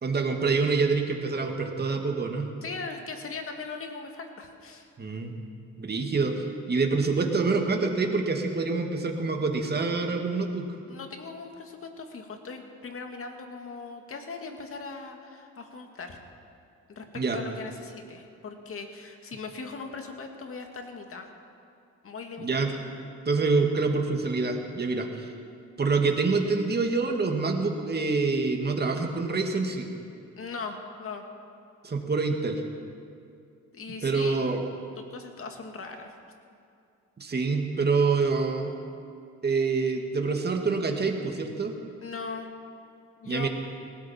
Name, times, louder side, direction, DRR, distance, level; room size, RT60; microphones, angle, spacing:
voice 1, 0.0-2.5 5.0-5.4 5.8-10.7 17.1-17.4 22.4-22.7 23.3-25.3 25.8-29.9 31.8-32.6 34.0-34.6 37.2-38.7 39.4-41.8 43.3-43.5, right 4 dB, 35° right, 3 dB, 2.1 m, -26 dB
voice 2, 2.6-4.9 10.9-16.2 16.9-17.0 17.3-21.3 22.0-22.7 30.4-31.2 33.7-34.6 35.1-36.2 42.0-42.5 43.2-43.5, left 4 dB, 45° left, 4 dB, 2.1 m, -39 dB
19.0 x 16.5 x 4.5 m, 2.4 s
cardioid pair, 90°, 30 cm